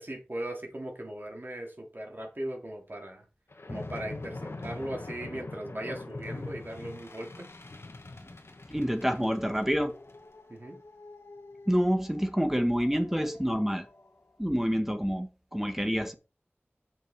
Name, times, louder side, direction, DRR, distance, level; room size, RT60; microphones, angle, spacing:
voice 1, 0.0-3.2 3.7-7.5 10.5-10.8, right 1 dB, 55° right, 3.2 m, -38 dB
sound 1, 3.5-14.1, left 2 dB, 80° left, 1.4 m, -44 dB
voice 2, 8.7-9.9 11.7-13.9 14.4-16.2, equal, 5° right, 1.5 m, -27 dB
7.5 x 6.6 x 4.4 m
wide cardioid pair, 45°, 4 cm